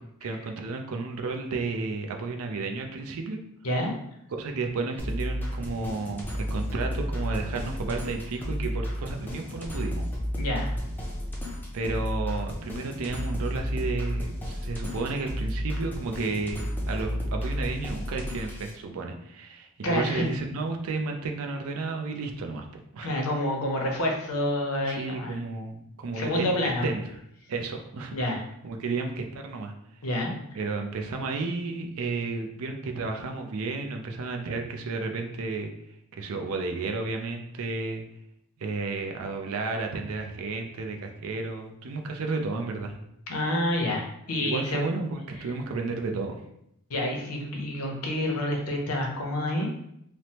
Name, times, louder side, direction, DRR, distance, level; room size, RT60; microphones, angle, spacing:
voice 1, 0.2-3.4 4.4-10.1 11.7-22.7 22.9-23.3 24.9-27.0 27.5-28.1 28.6-29.7 30.5-35.7 36.1-38.0 38.6-43.0 44.4-46.4, right 3 dB, 65° right, 3 dB, 0.4 m, -32 dB
sound 1, 5.0-18.7, equal, 10° left, 0.5 m, -32 dB
voice 2, 10.4-10.7 19.8-20.3 23.0-25.4 26.1-26.9 28.1-28.4 30.0-30.3 43.3-44.8 46.9-49.7, left 1 dB, 75° left, 1 dB, 0.6 m, -28 dB
3.1 x 2.0 x 2.8 m, 0.76 s
head